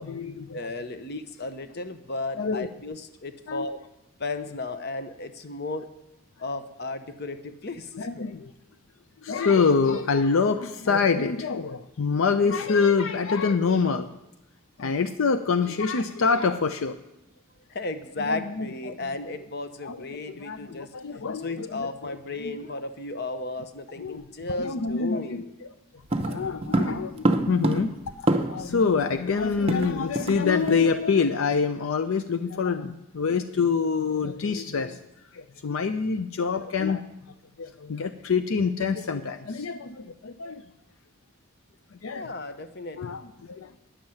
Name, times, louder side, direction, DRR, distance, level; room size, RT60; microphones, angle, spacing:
voice 1, 0.0-0.6 2.4-2.7 3.5-3.7 7.9-8.5 9.2-14.1 14.8-17.0 18.3-18.9 19.8-22.5 24.0-25.7 26.3-35.0 35.3-37.0 37.6-40.6 42.0-42.3 43.0-43.7, left 5 dB, 75° left, 10 dB, 0.5 m, -26 dB
voice 2, 0.5-3.8 4.2-5.9 6.4-8.2 17.7-21.0 21.4-25.5 42.1-43.2, left 2 dB, 50° left, 11 dB, 0.8 m, -34 dB
sound 1, 26.1-28.8 29.0-29.1 29.4-30.4 30.7-30.9 31.3-31.5, right 1 dB, 30° right, 0.7 m, -26 dB
10.0 x 7.2 x 7.7 m, 0.92 s
head